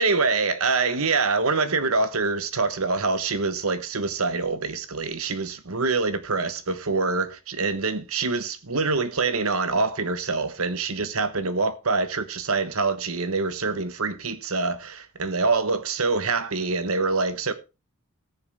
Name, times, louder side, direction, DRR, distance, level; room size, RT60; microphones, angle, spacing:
voice 1, 0.0-17.5, right 4 dB, 70° right, 1.2 m, -25 dB
18.0 x 6.8 x 3.5 m
head